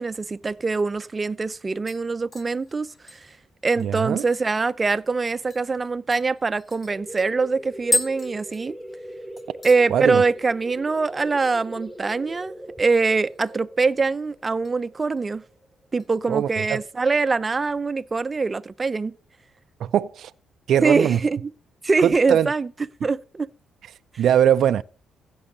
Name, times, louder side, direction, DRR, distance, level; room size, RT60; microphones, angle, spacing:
voice 1, 0.0-3.3 3.6-8.7 9.6-12.5 12.8-15.4 15.9-19.1 20.8-21.4 21.8-22.7 23.0-23.5 24.1-24.2, right 4 dB, 25° right, 0.7 m, -23 dB
sound 1, 1.9-4.7 5.0-5.1 5.5-5.7 6.1-9.1 9.4-9.9 10.2-10.6 10.9-11.0 13.1-13.7 14.0-14.8 15.2-15.4 16.0-16.9 17.3-17.4, left 2 dB, 30° left, 6.0 m, -34 dB
voice 2, 3.8-4.2 9.9-10.2 16.3-16.8 19.8-20.3 20.7-21.2 22.0-22.5 24.2-24.8, right 10 dB, 70° right, 0.4 m, -21 dB
sound 2, 6.9-16.3, right 1 dB, ahead, 5.7 m, -41 dB
16.0 x 6.3 x 4.0 m
cardioid pair, 90°, 0 cm